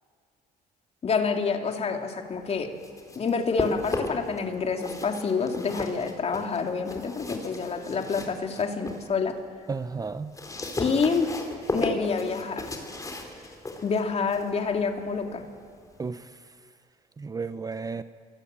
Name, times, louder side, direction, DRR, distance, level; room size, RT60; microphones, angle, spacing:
voice 1, 1.0-2.8 3.2-9.4 10.8-11.3 11.7-12.7 13.8-15.5, left 5 dB, 40° left, 2.7 m, -27 dB
sound 1, 2.6-4.4 4.7-9.1 9.5-16.1, left 2 dB, 20° left, 4.0 m, -35 dB
voice 2, 9.7-10.4 16.0-16.5 17.2-18.0, right 4 dB, 20° right, 0.7 m, -33 dB
28.0 x 23.5 x 8.9 m
cardioid pair, 110°, 17 cm